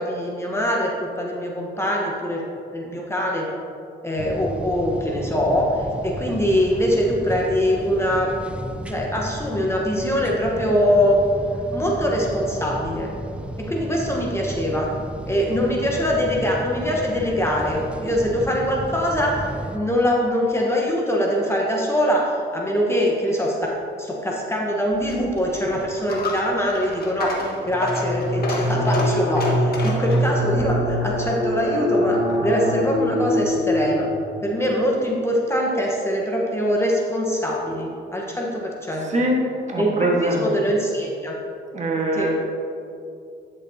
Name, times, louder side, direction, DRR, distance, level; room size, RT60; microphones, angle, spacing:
voice 1, 0.0-2.4 2.7-3.4 4.0-8.3 8.9-11.2 11.7-13.1 13.6-14.9 15.2-23.7 24.0-27.3 27.7-34.1 34.4-39.1 39.8-41.4 42.2-42.3, equal, 15° left, -2 dB, 1.1 m, -23 dB
sound 1, 4.2-19.8, right 1 dB, 5° right, 0.4 m, -33 dB
Coin (dropping), 24.9-32.4, left 2 dB, 55° left, 1.5 m, -31 dB
sound 2, 27.7-34.6, equal, 80° left, 1.8 m, -24 dB
voice 2, 38.9-40.6 41.7-42.3, right 1 dB, 35° right, -1 dB, 1.5 m, -23 dB
10.0 x 6.5 x 2.8 m, 2.6 s
cardioid pair, 90°, 20 cm